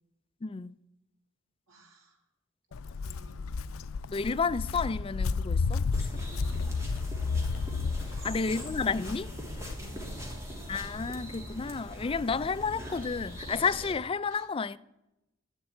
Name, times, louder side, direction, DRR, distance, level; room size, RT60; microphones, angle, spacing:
voice 1, 0.4-0.7 4.1-5.8 8.2-9.3 10.7-14.8, left 5 dB, 25° left, 0.4 m, -31 dB
voice 2, 1.7-2.3 2.7-2.8 3.0-3.4 5.6-7.5 8.0-8.4 9.7-10.3 14.3-14.5, right 1 dB, 80° right, 3.2 m, -55 dB
Walk footsteps, 2.7-9.7, left 4 dB, 90° left, 0.4 m, -32 dB
sound 1, 5.9-13.9, equal, 15° right, 2.6 m, -41 dB
11.0 x 7.4 x 9.6 m
head